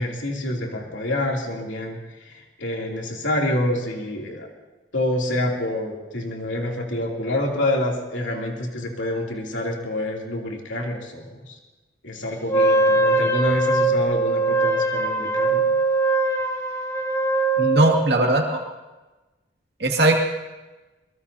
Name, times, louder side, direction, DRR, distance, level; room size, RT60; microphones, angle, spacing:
voice 1, 0.0-2.0 2.6-4.5 4.9-11.4 12.0-15.7, left 1 dB, 80° left, -1 dB, 3.0 m, -27 dB
Wind instrument woodwind instrument, 12.5-18.1, right 2 dB, 15° left, 1.0 m, -21 dB
voice 2, 17.6-18.6 19.8-20.1, right 2 dB, 60° right, 0 dB, 2.4 m, -19 dB
22.5 x 22.5 x 2.8 m, 1.1 s
head